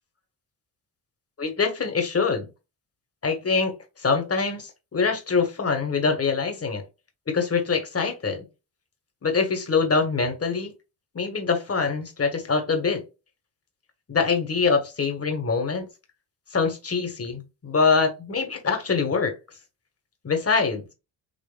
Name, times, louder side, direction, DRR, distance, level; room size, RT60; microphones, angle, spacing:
voice 1, 1.4-2.5 3.2-6.8 7.3-8.4 9.2-10.7 11.1-13.0 14.1-15.9 16.5-19.3 20.2-20.8, left 5 dB, 30° left, 1.6 m, -24 dB
5.4 x 2.9 x 2.3 m
cardioid pair, 70°, 45 cm